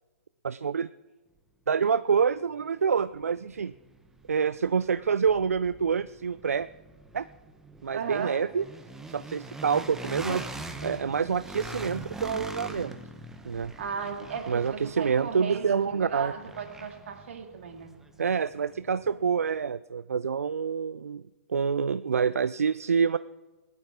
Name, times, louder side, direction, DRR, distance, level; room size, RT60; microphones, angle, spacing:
voice 1, 0.4-0.9 1.7-3.7 4.3-6.7 7.1-7.3 7.8-8.6 9.1-13.0 13.5-13.7 14.5-16.3 18.2-21.2 21.5-23.2, right 6 dB, 80° right, 15 dB, 0.4 m, -27 dB
sound 1, 2.6-2.7 3.1-19.1, right 2 dB, 5° right, 1.0 m, -43 dB
voice 2, 7.9-8.4 13.8-17.9, right 6 dB, 55° right, 5 dB, 2.3 m, -36 dB
19.0 x 12.0 x 3.7 m, 1.2 s
figure-of-eight pair, 130°, 8 cm